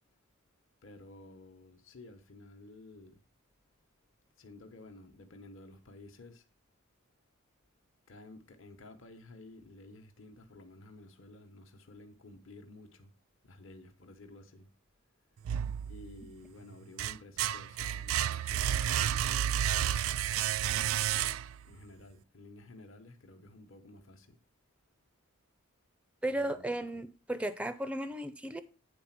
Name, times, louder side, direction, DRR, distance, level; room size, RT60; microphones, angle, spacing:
voice 1, 0.8-3.2 4.4-6.4 8.1-13.1 13.4-14.7 15.9-20.1 21.6-24.4 26.3-27.0, left 2 dB, 65° left, 1.1 m, -53 dB
sound 1, 15.4-16.3 16.7-21.7, right 10 dB, 75° right, 0.3 m, -31 dB
voice 2, 26.2-28.6, right 1 dB, 5° right, 0.4 m, -35 dB
9.3 x 4.0 x 5.9 m
head